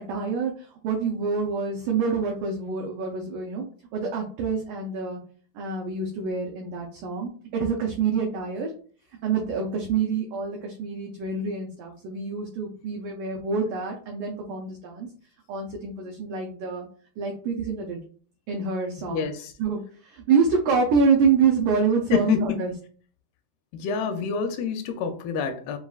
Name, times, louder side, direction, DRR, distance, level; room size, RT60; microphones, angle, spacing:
voice 1, 0.0-3.7 3.9-5.2 5.5-8.7 9.2-15.1 15.5-16.9 17.2-18.0 18.5-19.3 19.6-22.7, right 5 dB, 85° right, 1 dB, 1.8 m, -26 dB
voice 2, 19.1-19.5 22.1-22.7 23.7-25.8, left 6 dB, 85° left, 7 dB, 2.3 m, -27 dB
6.8 x 2.4 x 2.3 m, 0.44 s
omnidirectional pair, 4.5 m